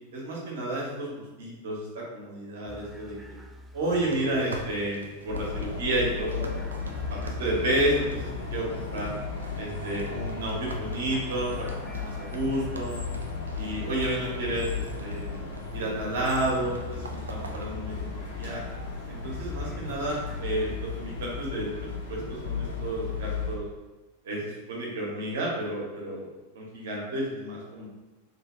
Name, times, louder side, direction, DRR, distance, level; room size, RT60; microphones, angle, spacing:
voice 1, 0.1-3.3 3.7-5.0 5.2-6.6 7.1-9.1 9.5-13.0 13.5-15.3 15.7-18.6 19.1-23.7 24.2-26.3 26.5-27.9, right 1 dB, 55° right, -3 dB, 1.2 m, -31 dB
sound 1, 2.7-20.8, left 1 dB, 10° right, 0.4 m, -44 dB
Steps - walk, 4.1-17.7, right 2 dB, 75° right, 0.4 m, -45 dB
sound 2, 5.3-23.5, left 5 dB, 70° left, 1.0 m, -35 dB
3.3 x 3.2 x 3.1 m, 1.1 s
figure-of-eight pair, 90°, 0 cm